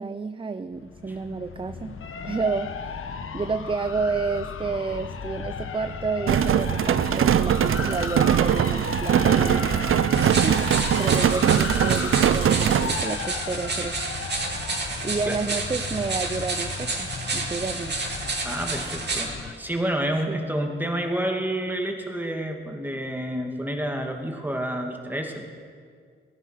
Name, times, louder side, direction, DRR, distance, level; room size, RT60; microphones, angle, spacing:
voice 1, 0.0-2.0 2.2-9.7 10.4-10.7 11.0-14.0 15.0-18.0 20.3-20.4, right 4 dB, 25° right, 11 dB, 0.5 m, -30 dB
sound 1, 0.7-19.5, left 6 dB, 85° left, 1.0 m, -35 dB
sound 2, 6.3-13.0, right 9 dB, 80° right, 0.5 m, -21 dB
sound 3, 10.1-19.3, right 3 dB, 55° right, 2.4 m, -30 dB
voice 2, 18.4-25.4, right 1 dB, 10° right, 3 dB, 1.9 m, -29 dB
19.5 x 13.0 x 5.8 m, 2.1 s
wide cardioid pair, 100°, 21 cm